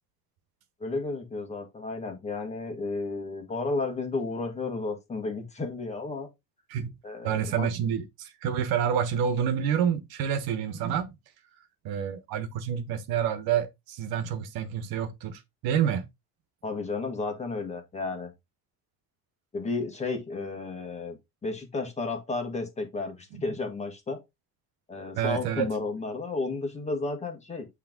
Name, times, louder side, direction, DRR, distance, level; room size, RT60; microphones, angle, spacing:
voice 1, 0.8-6.3 7.0-7.7 16.6-18.3 19.5-24.2 24.9-27.7, left 3 dB, 20° left, 1.5 m, -32 dB
voice 2, 7.2-11.1 11.8-16.1 23.3-23.4 25.1-25.7, right 8 dB, 70° right, 1.3 m, -28 dB
8.6 x 3.4 x 3.7 m
cardioid pair, 160°, 37 cm